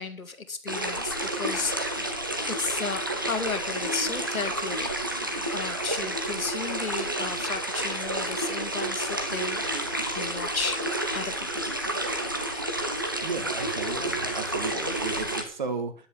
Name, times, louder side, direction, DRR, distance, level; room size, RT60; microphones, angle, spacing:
voice 1, 0.0-2.1 2.5-9.6 10.1-10.8 11.1-11.6, left 4 dB, 80° left, 8 dB, 2.3 m, -34 dB
sound 1, 0.7-15.4, right 1 dB, 15° right, 0.7 m, -30 dB
voice 2, 13.2-15.9, right 4 dB, 35° right, 8 dB, 1.6 m, -34 dB
10.5 x 9.1 x 7.0 m, 0.43 s
figure-of-eight pair, 165°, 42 cm